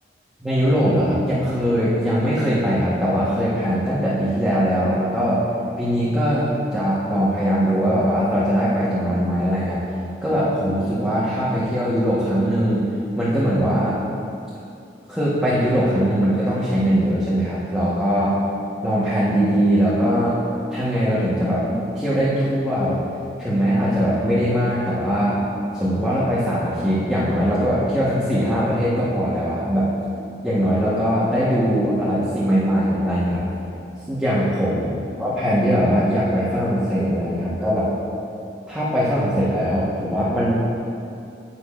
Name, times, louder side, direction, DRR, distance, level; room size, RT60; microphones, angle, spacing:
voice 1, 0.4-5.4 5.8-9.8 10.2-12.8 13.1-14.0 15.1-18.4 18.8-20.4 20.7-23.0 23.4-25.4 25.7-29.9 30.4-33.5 34.1-34.9 35.2-37.9 38.7-40.5, equal, 5° right, -10 dB, 1.1 m, -21 dB
10.5 x 8.2 x 2.4 m, 2.7 s
head